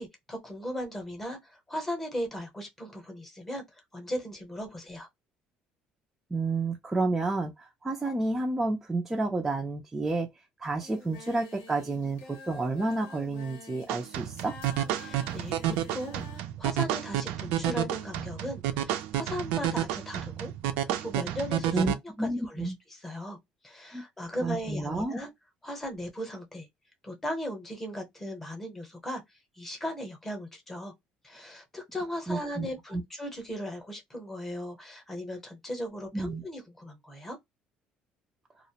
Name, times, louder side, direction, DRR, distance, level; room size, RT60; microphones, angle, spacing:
voice 1, 0.0-3.6 3.9-5.1 15.0-20.5 20.8-23.4 23.6-25.3 25.6-26.7 27.0-29.2 29.6-30.9 31.2-37.4, equal, 10° left, 0.7 m, -37 dB
voice 2, 6.3-10.3 10.6-14.5 21.7-22.8 23.9-24.0 24.4-25.2 32.3-32.7 32.9-33.0 36.1-36.4, right 2 dB, 10° right, 0.3 m, -30 dB
Singing, 10.8-16.4, left 3 dB, 85° left, 0.9 m, -49 dB
sound 1, 13.9-21.9, right 11 dB, 90° right, 0.4 m, -30 dB
2.3 x 2.0 x 2.8 m
cardioid pair, 175°, 3 cm